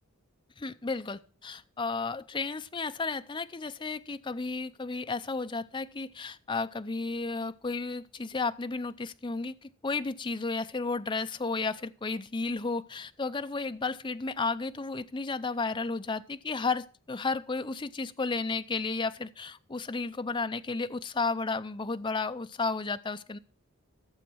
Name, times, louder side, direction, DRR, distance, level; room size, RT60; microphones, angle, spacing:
voice 1, 0.6-23.4, left 3 dB, 20° left, 10 dB, 0.5 m, -33 dB
12.0 x 7.2 x 6.2 m, 0.39 s
head